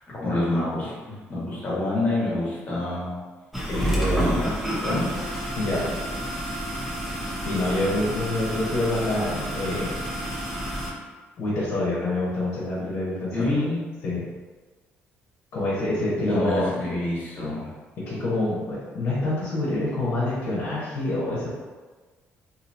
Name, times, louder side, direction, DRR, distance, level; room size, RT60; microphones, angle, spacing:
voice 1, 0.1-3.1 3.7-4.6 4.8-5.2 13.3-13.8 16.1-17.7, left 2 dB, 35° left, -7 dB, 1.3 m, -27 dB
sound 1, 3.5-10.9, right 1 dB, ahead, 0.7 m, -29 dB
voice 2, 7.4-10.0 11.4-13.6 14.0-14.2 15.5-16.6 18.1-21.5, left 2 dB, 55° left, -7 dB, 1.1 m, -26 dB
2.9 x 2.7 x 2.6 m, 1.4 s
cardioid pair, 125°, 5 cm